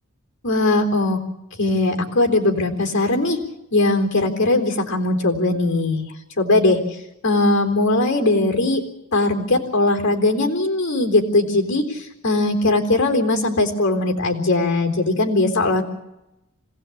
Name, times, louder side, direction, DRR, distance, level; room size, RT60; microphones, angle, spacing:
voice 1, 0.4-1.2 1.6-3.4 3.7-6.8 7.2-8.8 9.1-15.8, left 2 dB, 55° left, 3 dB, 3.9 m, -20 dB
25.5 x 17.0 x 8.6 m, 0.93 s
head